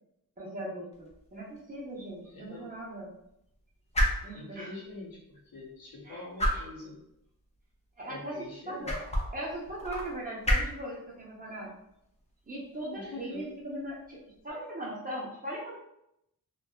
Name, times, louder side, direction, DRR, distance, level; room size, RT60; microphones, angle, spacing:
voice 1, 0.4-3.1 4.2-4.7 6.0-6.6 8.0-8.9 9.3-11.7 12.5-15.7, right 1 dB, 25° right, -5 dB, 0.7 m, -39 dB
sound 1, 0.9-14.5, equal, 20° left, 0.4 m, -36 dB
voice 2, 2.3-2.7 4.3-7.0 8.1-8.9 12.9-13.4, left 2 dB, 80° left, -2 dB, 0.9 m, -44 dB
2.6 x 2.3 x 2.2 m, 0.81 s
wide cardioid pair, 160°, 35 cm